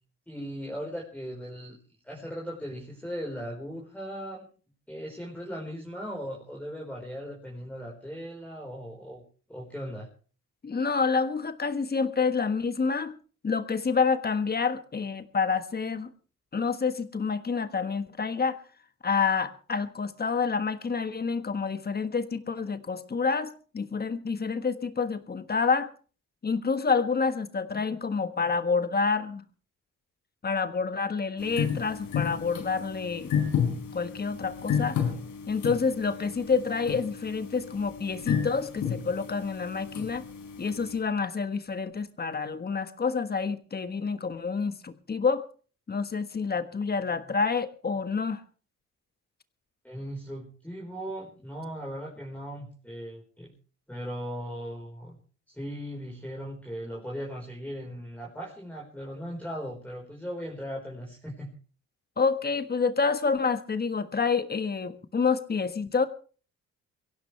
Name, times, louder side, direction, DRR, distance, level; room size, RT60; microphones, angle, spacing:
voice 1, 0.3-1.8 2.0-4.5 4.9-9.2 9.5-10.1 49.8-53.5 53.9-55.2 55.5-61.5, equal, 5° left, -2 dB, 4.6 m, -38 dB
voice 2, 10.6-13.2 13.4-16.1 16.5-18.6 19.0-25.9 26.4-29.4 30.4-33.3 33.9-35.0 35.5-40.2 40.6-45.4 45.9-48.4 62.2-66.1, left 5 dB, 30° left, 10 dB, 1.5 m, -28 dB
sound 1, 31.4-41.0, left 7 dB, 80° left, 3.8 m, -32 dB
23.0 x 16.5 x 3.3 m, 0.40 s
cardioid pair, 90°, 30 cm